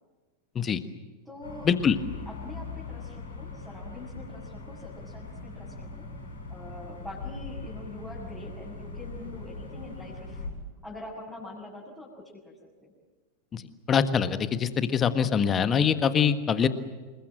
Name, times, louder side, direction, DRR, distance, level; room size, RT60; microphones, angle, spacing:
voice 1, 1.2-1.7 2.2-5.9 6.5-10.4 10.8-12.5 12.8-12.9, left 2 dB, 5° left, -6 dB, 6.8 m, -44 dB
sound 1, 1.4-10.5, left 3 dB, 75° left, 6.7 m, -40 dB
voice 2, 13.9-16.7, left 7 dB, 25° left, 11 dB, 1.5 m, -24 dB
28.0 x 21.5 x 7.7 m, 1.3 s
figure-of-eight pair, 90°, 0 cm